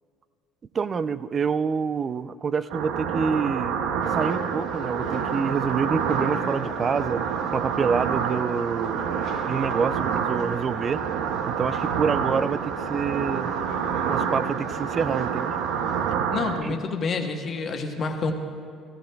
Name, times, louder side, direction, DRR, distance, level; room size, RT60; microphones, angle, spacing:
voice 1, 0.7-3.8 4.1-7.2 7.5-9.1 9.5-11.0 11.5-13.5 14.1-15.6 16.6-16.8, right 6 dB, 35° right, 15 dB, 0.3 m, -27 dB
sound 1, 2.7-16.6, right 7 dB, 85° right, 0.6 m, -27 dB
sound 2, 4.0-16.1, left 6 dB, 65° left, 1.3 m, -43 dB
voice 2, 16.3-18.3, left 4 dB, 40° left, 3 dB, 1.2 m, -28 dB
16.0 x 15.0 x 2.3 m, 2.2 s
supercardioid pair, 100°, 0 cm